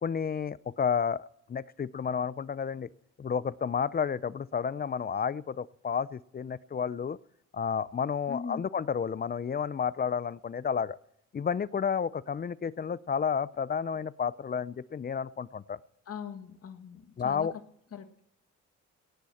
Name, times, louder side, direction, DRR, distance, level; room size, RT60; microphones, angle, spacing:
voice 1, 0.0-2.9 3.2-7.2 7.5-11.0 11.3-15.8 17.2-17.5, left 7 dB, 30° left, 19 dB, 0.6 m, -31 dB
voice 2, 8.3-8.6 16.1-17.6 17.9-18.2, left 7 dB, 50° left, 8 dB, 1.6 m, -41 dB
18.5 x 15.0 x 4.3 m, 0.75 s
cardioid pair, 90°, 30 cm